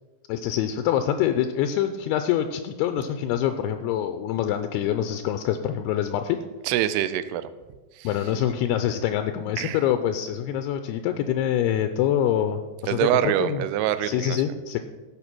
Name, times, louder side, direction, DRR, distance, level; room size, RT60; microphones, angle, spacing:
voice 1, 0.3-6.4 8.0-13.1 13.4-13.6 14.0-14.8, left 10 dB, 80° left, 8 dB, 2.5 m, -25 dB
voice 2, 6.6-7.5 8.0-8.1 9.6-9.8 12.9-14.4, right 12 dB, 80° right, 13 dB, 2.6 m, -25 dB
15.5 x 5.6 x 6.1 m, 1.3 s
omnidirectional pair, 4.8 m